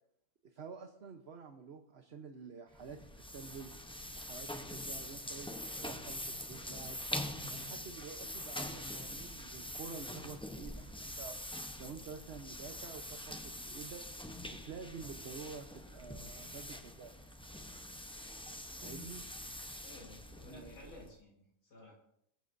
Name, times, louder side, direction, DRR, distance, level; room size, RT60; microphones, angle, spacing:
voice 1, 0.5-3.7 4.2-5.5 5.8-7.0 7.5-11.4 11.8-14.0 14.5-17.1 18.8-19.2 20.5-20.9, right 5 dB, 45° right, 4 dB, 1.1 m, -49 dB
sound 1, 2.7-21.2, left 1 dB, 5° left, 0.4 m, -44 dB
voice 2, 19.8-21.9, left 2 dB, 65° left, -3 dB, 4.2 m, -54 dB
22.0 x 14.0 x 2.7 m, 0.72 s
omnidirectional pair, 1.8 m